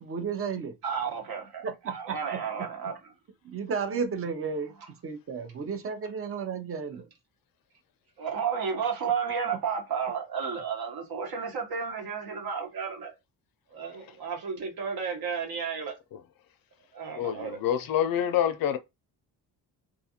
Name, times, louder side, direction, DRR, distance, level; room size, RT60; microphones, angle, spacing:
voice 1, 0.0-0.8 1.6-2.7 3.4-4.7 5.0-7.1, right 5 dB, 35° right, 0.6 m, -33 dB
voice 2, 0.8-3.0 8.2-13.1 13.7-15.9 16.9-17.6, right 6 dB, 65° right, 1.1 m, -32 dB
voice 3, 17.1-18.8, left 10 dB, 60° left, 0.5 m, -27 dB
2.4 x 2.4 x 2.8 m
cardioid pair, 90°, 40 cm